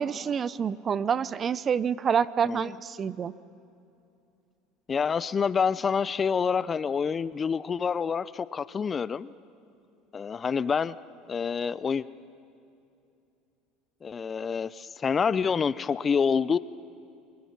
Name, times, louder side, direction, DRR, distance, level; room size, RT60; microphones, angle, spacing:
voice 1, 0.0-3.3, right 7 dB, 35° right, 18 dB, 0.6 m, -27 dB
voice 2, 4.9-9.3 10.1-11.0 11.3-12.1 14.0-16.6, left 6 dB, 30° left, 18 dB, 0.5 m, -27 dB
28.5 x 22.0 x 5.9 m, 2.7 s
supercardioid pair, 105°, 0 cm